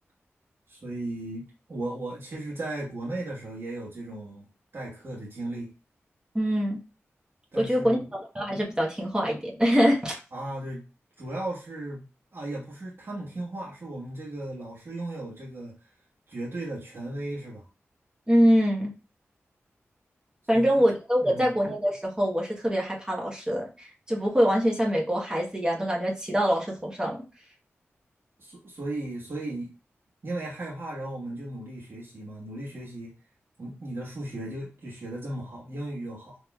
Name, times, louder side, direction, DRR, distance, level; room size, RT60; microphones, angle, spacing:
voice 1, 0.7-4.4 4.7-5.7 7.5-8.0 10.3-10.8 11.2-12.0 12.3-15.7 16.3-17.7 20.5-20.7 21.2-21.5 28.4-29.7 30.2-33.1 33.6-36.4, right 1 dB, 55° right, -6 dB, 1.4 m, -36 dB
voice 2, 6.3-6.8 7.6-10.2 18.3-18.9 20.5-27.2, equal, 15° right, -1 dB, 1.2 m, -24 dB
4.1 x 2.9 x 2.3 m, 0.31 s
cardioid pair, 60°, 5 cm